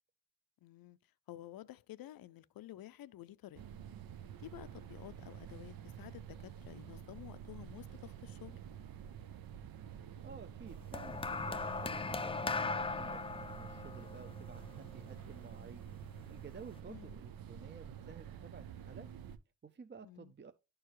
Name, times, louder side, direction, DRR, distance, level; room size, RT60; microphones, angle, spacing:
voice 1, 0.6-1.0 1.3-3.6 4.4-8.6 16.9-17.2 20.0-20.3, left 14 dB, 85° left, 0.5 m, -51 dB
sound 1, 3.5-19.4, right 9 dB, 85° right, 0.6 m, -49 dB
voice 2, 10.2-13.2 13.6-15.8 16.3-19.1 19.6-20.5, right 5 dB, 30° right, 0.5 m, -53 dB
sound 2, 10.9-15.4 16.3-16.5, left 4 dB, 15° left, 0.4 m, -38 dB
11.5 x 4.6 x 3.1 m
cardioid pair, 65°, 34 cm